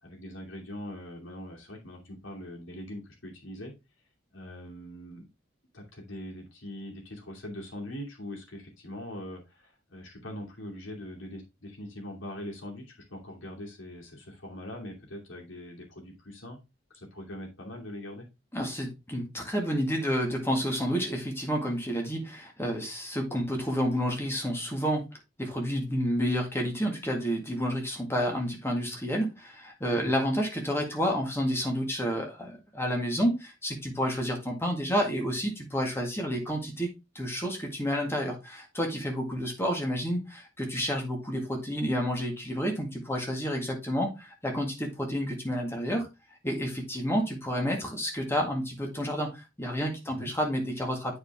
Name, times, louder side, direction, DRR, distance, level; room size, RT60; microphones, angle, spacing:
voice 1, 0.0-3.7 4.3-5.3 5.7-16.6 16.9-18.3 29.9-30.2 50.1-50.3, left 1 dB, 80° left, 0 dB, 2.6 m, -42 dB
voice 2, 18.5-25.1 25.4-36.9 37.2-46.1 46.4-51.2, equal, 15° left, 1 dB, 1.9 m, -30 dB
8.4 x 4.8 x 3.6 m, 0.25 s
head